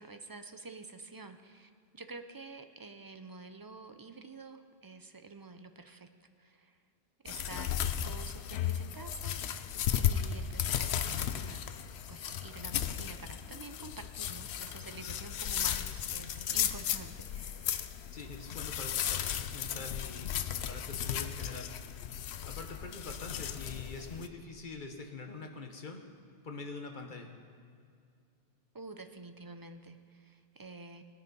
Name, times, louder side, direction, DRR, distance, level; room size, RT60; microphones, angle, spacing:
voice 1, 0.0-6.1 6.4-6.8 7.2-9.5 10.0-11.7 12.1-17.9 28.7-31.0, right 3 dB, 25° right, 8 dB, 0.6 m, -49 dB
sound 1, 7.3-24.3, left 9 dB, 90° left, 0.9 m, -35 dB
voice 2, 18.1-20.3 20.7-21.7 22.5-26.1 26.4-27.3, left 3 dB, 50° left, 4 dB, 1.3 m, -44 dB
17.5 x 9.9 x 5.4 m, 2.2 s
omnidirectional pair, 1.0 m